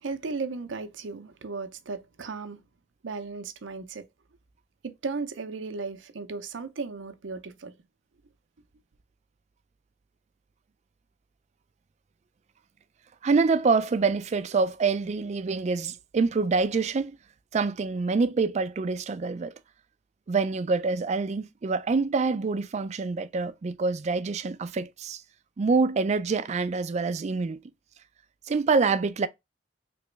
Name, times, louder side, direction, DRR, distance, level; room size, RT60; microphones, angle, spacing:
voice 1, 0.0-2.6 3.0-4.0 4.8-7.7, right 4 dB, 90° right, 0.6 m, -35 dB
voice 2, 13.2-17.2 17.5-19.5 20.3-25.2 25.6-27.6 28.5-29.3, right 4 dB, 35° right, 0.3 m, -26 dB
3.4 x 3.0 x 3.0 m
head